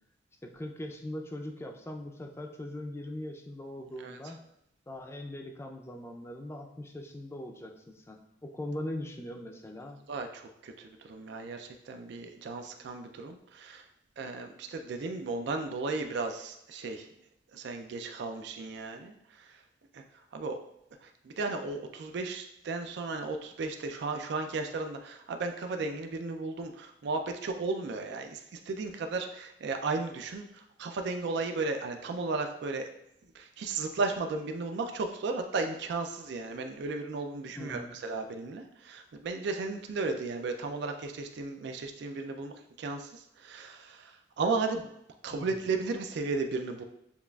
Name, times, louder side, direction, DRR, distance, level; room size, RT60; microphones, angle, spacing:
voice 1, 0.4-4.5 4.9-10.0 37.6-38.0 45.3-45.7, left 1 dB, 15° left, 3 dB, 0.4 m, -41 dB
voice 2, 10.1-13.8 14.2-17.1 17.5-19.6 19.9-20.0 20.3-20.6 21.0-32.9 33.3-44.9 45.2-46.8, right 3 dB, 65° right, 5 dB, 0.4 m, -35 dB
7.0 x 2.4 x 2.3 m, 0.79 s
head